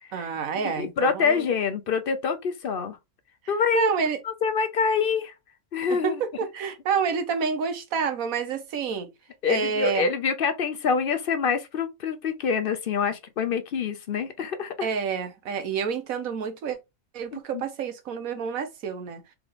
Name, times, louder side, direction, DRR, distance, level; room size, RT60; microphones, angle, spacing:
voice 1, 0.1-1.4 3.7-4.2 5.9-9.1 9.5-10.1 14.8-16.8 17.1-19.3, right 6 dB, 70° right, 1.4 m, -28 dB
voice 2, 0.6-3.0 3.5-3.9 4.2-5.3 5.7-6.2 9.4-14.9 17.3-17.6, left 6 dB, 55° left, 0.6 m, -26 dB
3.6 x 3.5 x 3.6 m
omnidirectional pair, 1.5 m